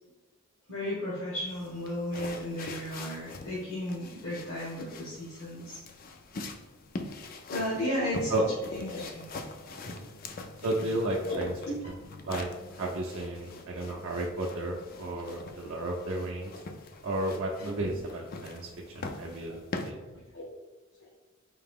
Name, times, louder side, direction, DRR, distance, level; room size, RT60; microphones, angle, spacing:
voice 1, 0.7-5.8 7.5-8.4 8.7-9.2 9.8-10.0 11.1-11.4 11.6-11.8 17.6-17.9 19.5-19.6 20.3-20.4, left 1 dB, 65° left, -8 dB, 1.3 m, -34 dB
sound 1, 1.5-19.9, left 3 dB, 40° left, 0.4 m, -43 dB
voice 2, 10.6-11.5 12.2-12.5 12.8-16.5 17.0-20.0, right 1 dB, 60° right, -1 dB, 0.5 m, -33 dB
4.8 x 2.8 x 3.6 m, 1.2 s
head